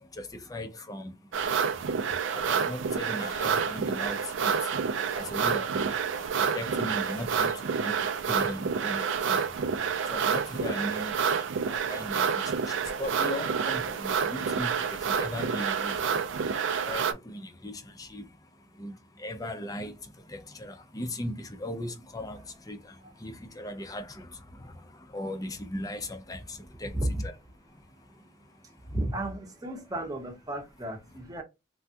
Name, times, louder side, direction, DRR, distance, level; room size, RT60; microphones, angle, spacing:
voice 1, 0.2-1.1 2.3-4.5 5.1-5.9 6.2-7.9 8.3-9.4 10.1-11.1 11.7-15.9 16.9-18.2 18.8-18.9 19.2-19.9 20.3-22.4 22.7-22.8 23.2-24.3 24.6-24.7 25.1-27.3, left 1 dB, 20° left, 0.5 m, -37 dB
sound 1, 1.3-17.1, right 6 dB, 75° right, 0.4 m, -29 dB
voice 2, 26.9-27.3 28.8-31.4, right 1 dB, 20° right, 0.8 m, -33 dB
3.4 x 2.2 x 2.7 m
head